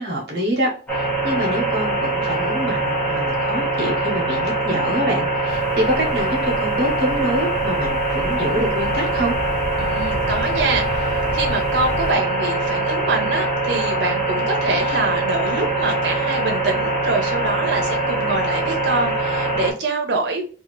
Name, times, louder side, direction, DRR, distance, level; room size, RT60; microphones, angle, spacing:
voice 1, 0.0-9.3, equal, 65° right, -1 dB, 0.9 m, -25 dB
sound 1, 0.9-19.7, right 2 dB, 10° left, 0.8 m, -23 dB
sound 2, 5.5-12.1, left 1 dB, 75° left, 0.6 m, -33 dB
voice 2, 9.8-20.4, right 3 dB, 85° right, 2 dB, 0.6 m, -25 dB
2.7 x 2.4 x 3.0 m, 0.39 s
head